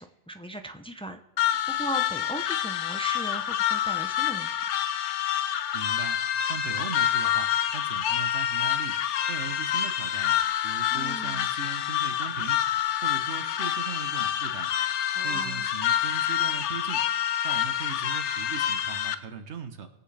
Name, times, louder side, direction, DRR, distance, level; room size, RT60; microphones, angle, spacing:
voice 1, 0.0-4.6 10.9-11.5 15.1-15.7, right 1 dB, 10° left, 6 dB, 0.4 m, -38 dB
sound 1, 1.4-19.1, left 10 dB, 75° left, 0.9 m, -27 dB
voice 2, 5.7-6.2 6.5-9.0 9.3-12.6 13.0-14.7 15.2-17.0 17.4-19.9, right 6 dB, 70° right, 8 dB, 1.3 m, -39 dB
sound 2, 7.2-11.1 11.9-12.6, left 9 dB, 40° left, 0.7 m, -43 dB
21.5 x 7.7 x 3.4 m, 0.97 s
omnidirectional pair, 1.2 m